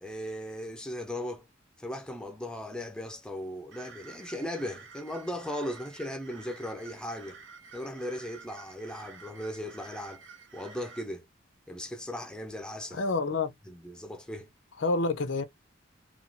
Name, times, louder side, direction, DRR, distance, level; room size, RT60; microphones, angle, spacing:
voice 1, 0.0-1.5 1.8-7.4 7.7-10.2 10.5-11.2 11.7-13.0 13.7-14.5, left 1 dB, 5° left, 0.5 m, -37 dB
sound 1, 3.7-11.1, right 5 dB, 70° right, 0.7 m, -50 dB
voice 2, 12.9-13.5 14.8-15.4, left 3 dB, 75° left, 0.6 m, -28 dB
3.0 x 2.3 x 2.6 m
head